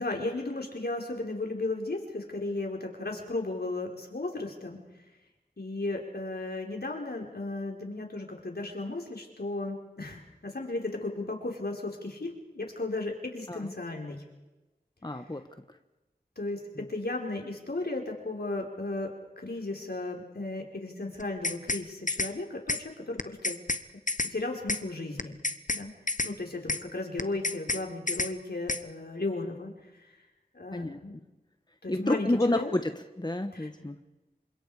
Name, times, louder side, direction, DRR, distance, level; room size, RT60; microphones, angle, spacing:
voice 1, 0.0-4.8 5.6-14.2 16.4-23.6 24.2-25.3 25.7-25.9 26.2-29.7 30.5-31.1 31.8-32.7 33.5-33.7, left 2 dB, 75° left, 1 dB, 4.7 m, -35 dB
voice 2, 15.0-15.4 16.8-16.9 30.7-31.0 31.9-32.9 33.2-34.0, left 1 dB, 25° left, 7 dB, 1.4 m, -29 dB
sound 1, 21.2-21.8 22.1-22.3 22.7-22.8 23.2-23.8 24.1-24.3 24.7-24.8 25.2-25.8 26.1-26.3 26.7-26.8 27.2-27.8 28.1-28.3 28.7-28.8, left 3 dB, 50° left, 1.2 m, -29 dB
28.5 x 26.0 x 5.0 m, 1.1 s
wide cardioid pair, 45°, 17 cm